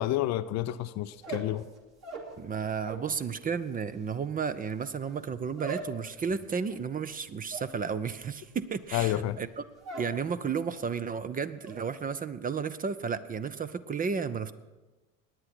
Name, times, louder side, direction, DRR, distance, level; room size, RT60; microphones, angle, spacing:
voice 1, 0.0-1.6 8.9-9.4, left 14 dB, 45° left, 0.5 m, -29 dB
sound 1, 1.1-3.1 3.4-10.2 10.5-11.0 11.3-11.8, right 5 dB, 45° right, 2.6 m, -43 dB
voice 2, 2.4-9.6 10.0-14.5, right 6 dB, 20° right, 0.6 m, -33 dB
18.0 x 9.8 x 4.4 m
hypercardioid pair, 65°, 39 cm